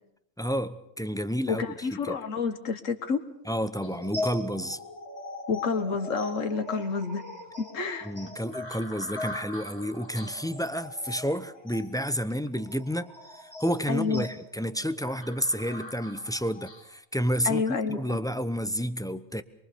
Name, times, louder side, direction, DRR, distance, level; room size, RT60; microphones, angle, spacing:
voice 1, 0.4-2.2 3.5-4.8 8.0-13.1 13.4-19.4, equal, 5° left, 0.6 m, -30 dB
voice 2, 1.5-3.2 5.5-7.2 7.7-8.1 13.9-14.3 17.4-18.2, left 5 dB, 80° left, 1.8 m, -29 dB
sound 1, 3.8-16.9, left 2 dB, 20° left, 4.0 m, -40 dB
24.0 x 23.5 x 6.9 m
omnidirectional pair, 1.3 m